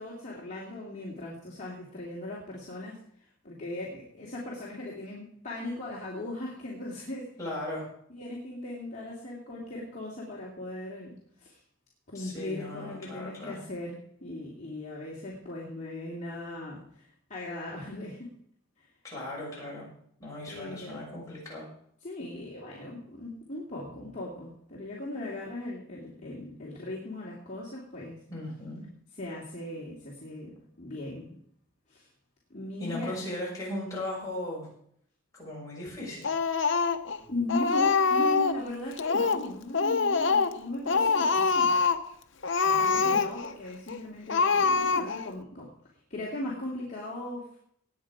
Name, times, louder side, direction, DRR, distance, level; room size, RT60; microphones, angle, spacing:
voice 1, 0.0-7.3 8.1-11.6 12.1-18.3 18.8-18.9 20.5-21.0 22.0-28.2 29.1-31.4 31.9-32.1 32.5-33.2 37.3-41.7 42.8-45.7 46.1-47.6, left 1 dB, 35° left, -5 dB, 2.7 m, -38 dB
voice 2, 7.4-7.9 12.1-13.6 19.0-19.9 20.2-21.7 28.3-28.8 32.8-34.7 35.3-36.3 42.6-43.2, left 1 dB, 15° left, -5 dB, 5.8 m, -37 dB
Speech, 36.2-37.2 37.5-38.6 39.0-39.5 39.7-40.6 40.9-42.1 42.4-43.5 43.9-44.0 44.3-45.3, left 4 dB, 60° left, 0.9 m, -25 dB
19.0 x 8.8 x 4.9 m, 0.67 s
head